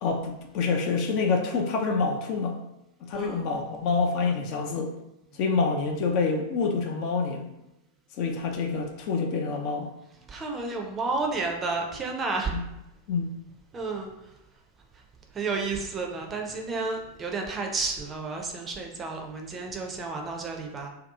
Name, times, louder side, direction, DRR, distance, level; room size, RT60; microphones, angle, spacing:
voice 1, 0.0-2.6 3.0-4.9 5.3-7.5 8.2-9.9 12.5-12.6 13.1-13.2, left 4 dB, 45° left, 3 dB, 0.4 m, -27 dB
voice 2, 10.3-12.5 13.7-14.1 15.3-20.9, right 3 dB, 20° right, 2 dB, 0.5 m, -31 dB
2.7 x 2.3 x 3.5 m, 0.92 s
figure-of-eight pair, 90°, 0 cm